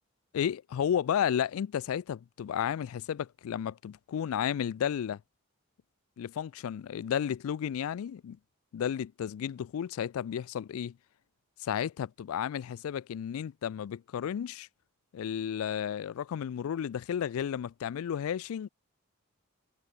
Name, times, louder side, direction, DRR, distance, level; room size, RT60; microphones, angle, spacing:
voice 1, 0.3-5.2 6.2-8.4 8.7-11.0 11.6-14.7 15.1-18.7, left 8 dB, 70° left, 0.3 m, -32 dB
head